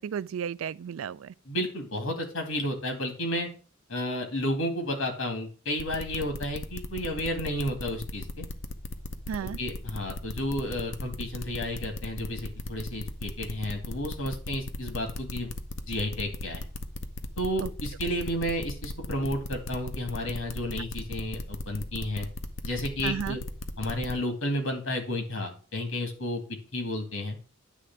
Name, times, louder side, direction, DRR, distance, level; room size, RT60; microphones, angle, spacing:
voice 1, 0.0-1.3 9.3-9.6 17.6-17.7 23.0-23.4, right 8 dB, 80° right, 0.3 m, -33 dB
voice 2, 1.5-3.5 3.9-8.4 9.4-15.5 15.8-16.7 17.4-22.3 22.6-23.4 23.8-26.4 26.7-27.4, left 1 dB, 85° left, 2.2 m, -32 dB
sound 1, 5.8-24.1, left 2 dB, 65° left, 0.8 m, -36 dB
9.8 x 3.3 x 5.9 m
head